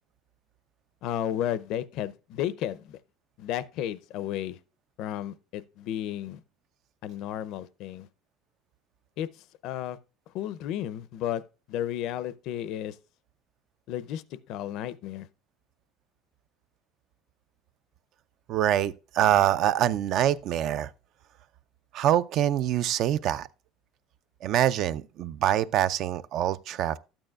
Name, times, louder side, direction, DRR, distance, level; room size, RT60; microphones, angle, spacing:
voice 1, 1.0-3.0 3.4-4.6 5.0-6.4 7.0-8.1 9.2-9.3 9.6-10.0 10.3-11.4 11.7-13.0 13.9-14.2 14.5-15.3, left 11 dB, 60° left, 0.5 m, -33 dB
voice 2, 18.5-20.9 21.9-23.5 24.4-27.0, right 11 dB, 50° right, 0.4 m, -25 dB
12.5 x 8.9 x 2.3 m
cardioid pair, 150°, 0 cm